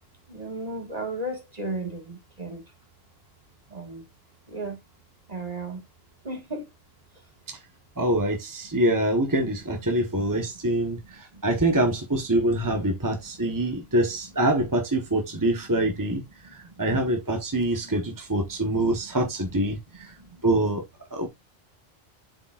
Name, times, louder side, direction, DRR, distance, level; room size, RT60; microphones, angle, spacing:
voice 1, 0.3-2.6 3.7-4.0 4.5-4.8 5.3-5.8 6.2-6.7 8.7-8.8 10.2-10.3 10.8-10.9 11.3-11.4 12.9-13.0 13.4-13.8 16.1-16.9 17.8-18.0 18.7-18.8 20.0-20.4 21.2-21.3, right 2 dB, 40° right, 2.0 m, -36 dB
voice 2, 8.0-16.2 16.8-20.1 20.4-20.8 21.1-21.3, right 1 dB, 20° right, 1.2 m, -25 dB
7.8 x 6.9 x 2.5 m
omnidirectional pair, 1.1 m